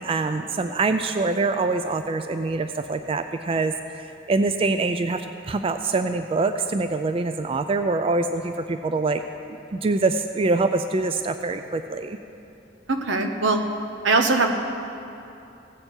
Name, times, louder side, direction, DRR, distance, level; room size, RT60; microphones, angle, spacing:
voice 1, 0.0-9.2 9.7-12.2, right 3 dB, 30° right, 8 dB, 0.3 m, -24 dB
voice 2, 12.9-13.6 14.0-14.5, right 3 dB, 80° right, 5 dB, 1.0 m, -21 dB
17.0 x 8.1 x 4.4 m, 2.8 s
head